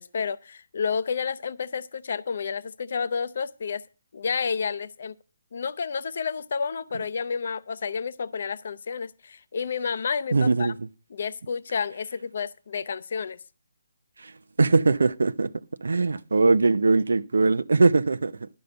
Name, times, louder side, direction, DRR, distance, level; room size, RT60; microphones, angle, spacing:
voice 1, 0.0-3.8 4.1-5.1 5.5-10.7 11.1-13.4, left 6 dB, 55° left, 0.6 m, -30 dB
voice 2, 10.3-10.7 14.2-14.3 14.6-15.5 15.8-18.5, right 3 dB, 90° right, 0.6 m, -21 dB
11.5 x 5.4 x 7.8 m
hypercardioid pair, 170°, 0 cm